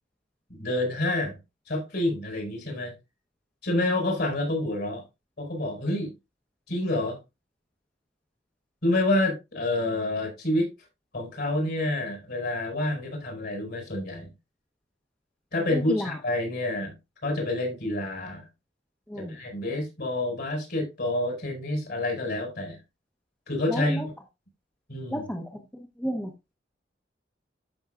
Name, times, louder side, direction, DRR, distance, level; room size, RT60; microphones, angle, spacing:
voice 1, 0.5-1.4 1.7-2.9 3.6-5.0 5.4-6.1 6.7-7.2 8.8-10.7 11.1-14.3 15.5-16.9 17.2-18.5 19.2-22.8 23.5-24.0 24.9-25.3, left 1 dB, 60° left, 5.0 m, -28 dB
voice 2, 15.7-16.1 19.1-19.4 23.7-24.1 25.1-25.6 26.0-26.3, equal, 5° left, 1.1 m, -31 dB
14.0 x 6.2 x 2.5 m
head